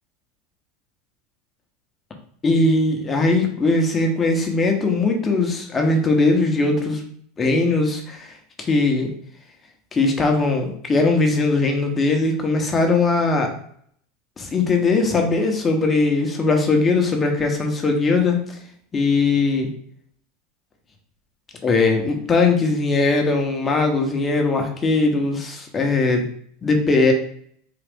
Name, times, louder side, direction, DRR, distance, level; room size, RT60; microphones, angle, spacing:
voice 1, 2.4-7.0 7.4-9.1 9.9-13.5 14.4-18.6 18.9-19.7 21.6-26.3 26.6-27.1, left 3 dB, 25° left, 3 dB, 0.9 m, -20 dB
3.8 x 2.4 x 3.5 m, 0.64 s
supercardioid pair, 110°, 0 cm